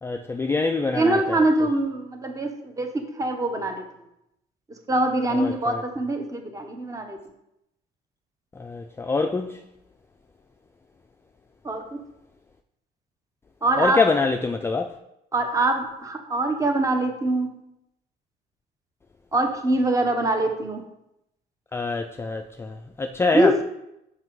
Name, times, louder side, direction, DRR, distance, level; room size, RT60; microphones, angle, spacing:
voice 1, 0.0-1.4 5.3-5.8 8.6-9.6 13.8-15.0 21.7-23.6, left 4 dB, 15° left, 5 dB, 0.4 m, -25 dB
voice 2, 0.9-3.8 4.7-7.2 11.6-12.0 13.6-14.0 15.3-17.5 19.3-20.8 23.3-23.6, right 2 dB, 20° right, 5 dB, 1.1 m, -23 dB
5.9 x 5.8 x 4.7 m, 0.84 s
cardioid pair, 110°, 17 cm